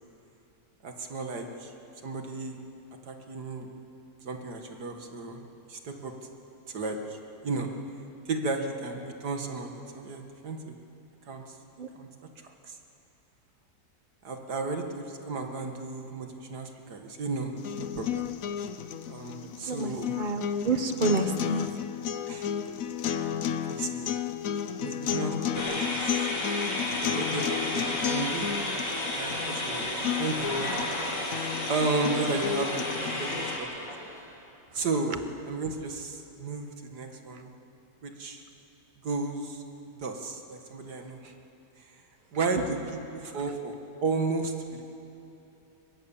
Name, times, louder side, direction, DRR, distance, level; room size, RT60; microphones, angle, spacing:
voice 1, 0.8-1.7 2.0-2.6 3.0-3.7 4.2-6.1 6.7-7.2 7.4-7.7 8.3-10.8 11.3-11.4 12.0-12.1 12.6-12.8 14.2-18.2 19.1-20.2 22.3-22.5 23.1-23.3 23.7-24.2 24.8-26.1 27.0-28.6 28.9-33.9 34.7-37.5 38.0-38.4 39.0-39.6 40.0-41.3 42.3-43.7 44.0-44.8, right 3 dB, 65° right, 4 dB, 2.4 m, -34 dB
sound 1, 17.6-33.6, left 9 dB, 60° left, 1.1 m, -33 dB
voice 2, 19.7-21.7, right 3 dB, 35° right, 9 dB, 1.0 m, -29 dB
sound 2, 25.5-34.1, left 1 dB, 80° left, 4.6 m, -32 dB
24.0 x 22.0 x 7.3 m, 2.8 s
omnidirectional pair, 1.9 m